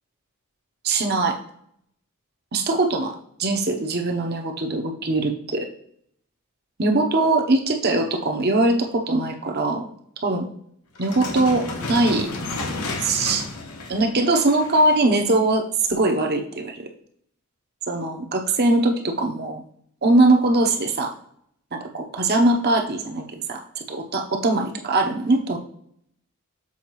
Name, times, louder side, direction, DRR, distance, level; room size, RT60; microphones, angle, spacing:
voice 1, 0.8-1.4 2.5-5.7 6.8-9.9 10.2-10.5 11.0-12.3 13.0-13.4 13.9-16.9 17.9-19.6 20.0-21.1 21.7-25.6, right 2 dB, 45° right, 4 dB, 0.8 m, -21 dB
sound 1, 11.0-15.1, left 2 dB, 80° left, 1.1 m, -32 dB
7.1 x 4.7 x 3.1 m, 0.68 s
head